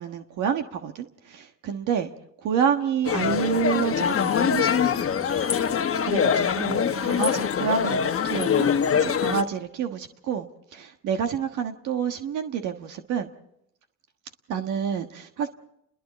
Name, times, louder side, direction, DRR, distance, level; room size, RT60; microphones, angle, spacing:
voice 1, 0.0-2.1 2.4-5.4 5.6-13.3 14.5-15.5, right 8 dB, 85° right, 5 dB, 1.4 m, -29 dB
sound 1, 3.0-9.4, left 7 dB, 45° left, 1.2 m, -23 dB
29.5 x 22.0 x 4.1 m, 0.76 s
cardioid pair, 90°, 30 cm